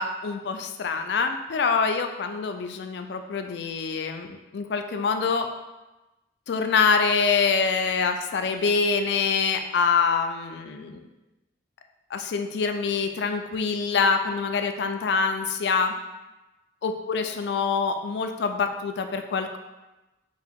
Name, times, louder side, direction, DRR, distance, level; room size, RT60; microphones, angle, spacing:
voice 1, 0.0-5.5 6.5-11.1 12.1-15.9 16.8-19.6, left 5 dB, 70° left, 6 dB, 0.4 m, -25 dB
4.5 x 2.3 x 3.6 m, 1.0 s
head